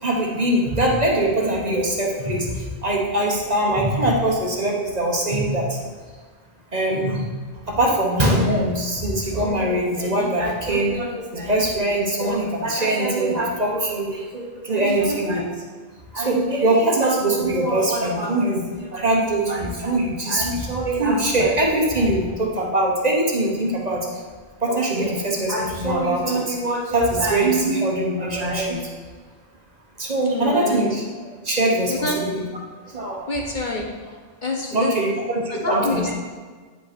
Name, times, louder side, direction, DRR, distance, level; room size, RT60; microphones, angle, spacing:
voice 1, 0.0-2.5 2.8-5.8 6.7-7.2 7.7-15.4 16.1-24.1 24.6-28.8 30.0-31.0 31.4-32.4 32.9-33.3 34.7-36.1, right 1 dB, 40° right, -1 dB, 1.2 m, -22 dB
voice 2, 14.8-15.3 30.2-30.9 31.9-32.2 33.3-33.9 34.4-35.0 35.5-36.1, left 2 dB, 45° left, 0 dB, 1.0 m, -27 dB
9.2 x 5.4 x 4.3 m, 1.5 s
omnidirectional pair, 1.2 m